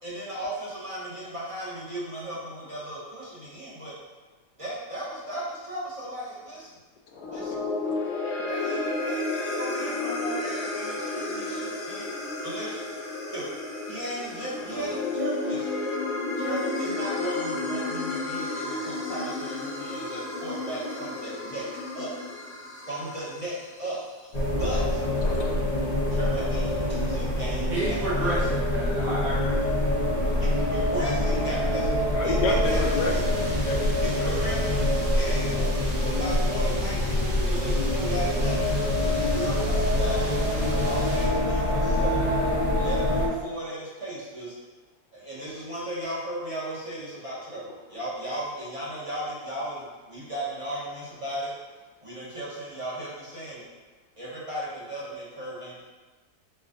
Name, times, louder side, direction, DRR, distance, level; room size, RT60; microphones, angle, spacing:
voice 1, 0.0-3.9 4.6-6.7 7.3-7.5 8.4-11.6 11.9-12.1 12.4-12.8 13.3-13.4 13.9-15.7 16.4-21.7 21.9-22.1 22.9-24.0 24.6-25.0 26.1-28.3 30.4-31.9 32.2-33.2 34.0-38.7 39.0-42.2 42.7-44.5 45.1-51.5 52.0-53.6 54.2-55.8, right 1 dB, 25° right, -8 dB, 0.9 m, -36 dB
sound 1, 7.1-23.6, left 2 dB, 60° left, 0.9 m, -32 dB
voice 2, 7.4-8.1 20.6-20.9 25.1-25.7 26.9-27.2 32.1-34.3, left 4 dB, 85° left, 2 dB, 1.2 m, -32 dB
sound 2, 24.3-43.3, left 1 dB, 35° left, 0.7 m, -25 dB
voice 3, 27.7-29.6, right 1 dB, 80° right, -7 dB, 1.5 m, -30 dB
sound 3, 32.6-41.3, right 1 dB, 60° right, 1.0 m, -39 dB
4.3 x 2.4 x 3.8 m, 1.3 s
omnidirectional pair, 1.8 m